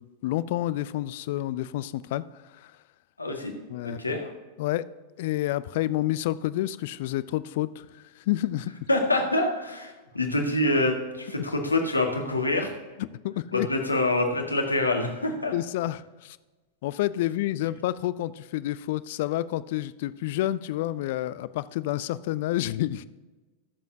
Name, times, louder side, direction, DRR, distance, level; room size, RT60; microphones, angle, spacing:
voice 1, 0.0-2.2 2.5-2.7 3.7-4.2 4.6-4.8 5.2-7.9 8.2-8.7 13.0-13.7 15.5-16.4 16.8-23.1, left 15 dB, 50° left, 17 dB, 0.4 m, -29 dB
voice 2, 3.2-3.5 4.0-4.2 8.9-12.7 13.5-15.5, left 2 dB, 80° left, 3 dB, 1.6 m, -26 dB
20.5 x 7.2 x 2.8 m, 1.2 s
figure-of-eight pair, 90°, 0 cm